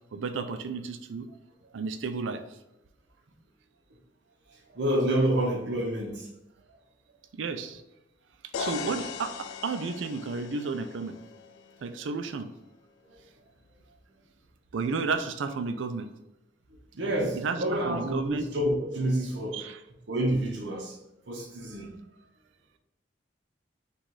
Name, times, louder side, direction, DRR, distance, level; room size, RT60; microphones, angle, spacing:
voice 1, 0.1-1.3 1.7-2.6 7.3-7.8 8.6-11.2 11.8-12.5 14.7-16.1 17.2-18.5 19.5-19.8, right 4 dB, 85° right, 0.4 m, -32 dB
voice 2, 4.7-6.3 13.1-13.2 16.9-19.6 20.1-21.0 21.3-22.0, right 1 dB, 65° right, 0.8 m, -28 dB
sound 1, 8.5-12.4, left 6 dB, 85° left, 0.4 m, -39 dB
3.9 x 2.4 x 4.6 m
head